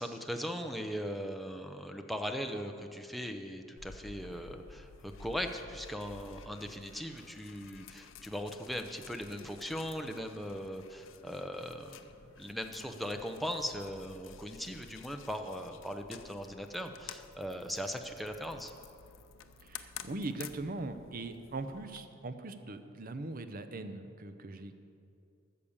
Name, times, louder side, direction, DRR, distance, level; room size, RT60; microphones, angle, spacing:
voice 1, 0.0-12.0 12.4-18.7, equal, ahead, 4 dB, 0.7 m, -39 dB
sound 1, 3.8-22.0, left 6 dB, 70° left, 0.6 m, -52 dB
voice 2, 19.6-24.8, right 2 dB, 45° right, 10 dB, 0.7 m, -40 dB
13.5 x 6.8 x 7.2 m, 2.5 s
head